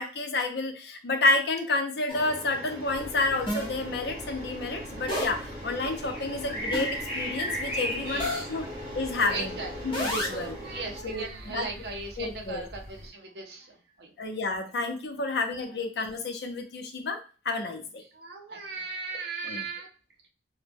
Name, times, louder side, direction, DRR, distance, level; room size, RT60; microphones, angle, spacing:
voice 1, 0.0-8.7 8.9-9.5 9.8-10.6 11.0-11.7 12.2-12.6 14.2-17.2 17.4-18.0 19.4-19.6, left 2 dB, 70° left, 6 dB, 0.5 m, -30 dB
sound 1, 2.1-2.2 3.5-3.7 5.1-5.5 6.7-7.0 8.2-8.5 9.9-10.5, left 1 dB, 30° left, 0.9 m, -30 dB
sound 2, 2.1-11.0, equal, 30° right, 1.1 m, -41 dB
sound 3, 2.8-13.1, equal, 5° right, 1.7 m, -39 dB
voice 2, 8.0-8.5 9.3-9.7 10.1-14.1 18.1-19.9, right 4 dB, 65° right, 1 dB, 0.6 m, -38 dB
2.9 x 2.1 x 3.4 m, 0.36 s
head